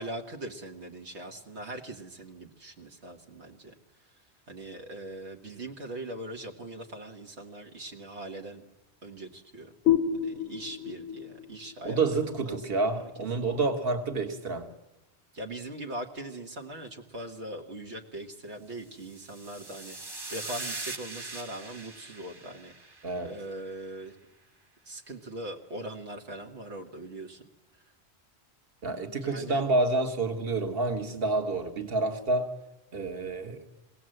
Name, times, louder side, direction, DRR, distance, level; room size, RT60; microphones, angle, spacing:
voice 1, 0.0-3.7 4.0-8.6 9.0-9.7 10.2-12.7 15.3-20.0 20.3-24.2 24.9-27.8 28.8-29.6, right 1 dB, 80° right, 2 dB, 1.8 m, -41 dB
sound 1, 9.9-13.3, left 9 dB, 65° left, 1.1 m, -30 dB
voice 2, 11.9-14.7 23.0-23.4 28.8-32.5 32.9-33.7, right 3 dB, 60° right, 5 dB, 1.8 m, -28 dB
sound 2, 18.9-23.4, right 2 dB, 20° right, 1.0 m, -41 dB
22.5 x 17.5 x 7.8 m, 0.91 s
omnidirectional pair, 1.1 m